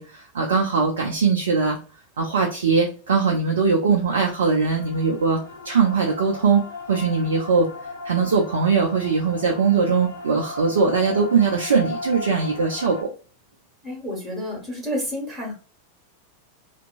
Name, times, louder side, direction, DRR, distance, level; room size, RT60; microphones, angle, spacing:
voice 1, 0.0-1.8 2.2-6.6 6.9-7.7 8.0-13.1, right 5 dB, 65° right, 1 dB, 0.4 m, -21 dB
sound 1, 4.4-13.0, left 3 dB, 65° left, 0.9 m, -37 dB
voice 2, 13.8-15.5, left 1 dB, 15° right, -1 dB, 1.3 m, -30 dB
2.7 x 2.2 x 2.5 m, 0.37 s
figure-of-eight pair, 90°, 0 cm